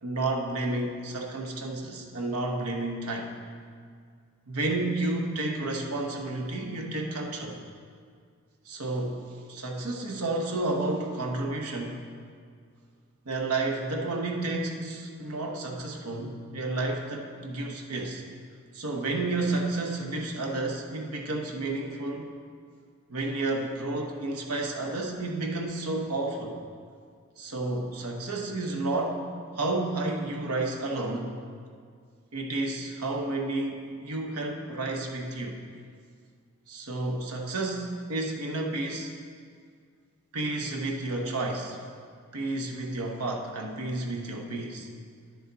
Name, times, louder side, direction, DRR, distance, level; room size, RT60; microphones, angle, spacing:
voice 1, 0.0-3.3 4.5-7.6 8.6-9.2 9.5-12.0 13.3-18.2 18.7-22.3 23.1-26.6 27.4-29.2 29.5-31.4 32.3-35.6 36.7-39.1 40.3-41.8 42.3-44.9, right 2 dB, 90° right, 1 dB, 1.0 m, -31 dB
10.0 x 7.1 x 4.0 m, 2.1 s
head